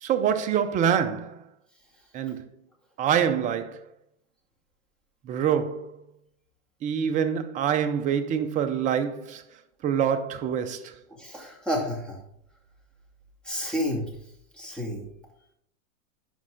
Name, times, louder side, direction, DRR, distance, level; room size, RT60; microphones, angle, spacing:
voice 1, 0.0-1.4 2.1-2.4 3.0-3.8 5.2-6.0 6.8-9.4 9.8-10.9, right 8 dB, 20° right, 0.5 m, -25 dB
voice 2, 11.1-12.2 13.4-14.0 14.5-15.0, equal, ahead, 2.5 m, -30 dB
11.5 x 5.4 x 3.9 m
hypercardioid pair, 125°, 45 cm